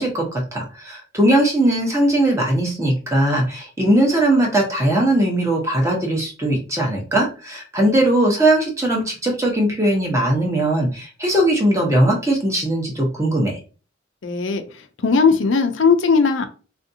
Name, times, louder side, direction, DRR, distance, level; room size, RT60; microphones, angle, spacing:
voice 1, 0.0-13.6, right 1 dB, 15° right, -1 dB, 0.8 m, -19 dB
voice 2, 14.2-14.6 15.0-16.5, left 5 dB, 75° left, 6 dB, 0.5 m, -17 dB
3.4 x 2.6 x 2.7 m, 0.36 s
head